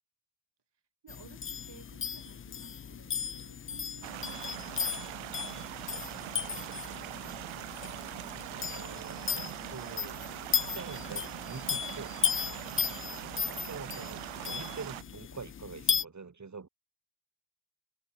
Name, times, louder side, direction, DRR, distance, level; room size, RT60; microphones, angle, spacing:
voice 1, 1.0-7.2 13.6-14.0, right 8 dB, 60° right, 6.1 m, -58 dB
sound 1, 1.1-16.0, left 8 dB, 30° left, 0.5 m, -36 dB
sound 2, 4.0-15.0, right 21 dB, 90° right, 1.0 m, -42 dB
voice 2, 8.3-10.2 10.6-12.2 13.1-16.7, right 5 dB, 35° right, 4.1 m, -45 dB
supercardioid pair, 50°, 46 cm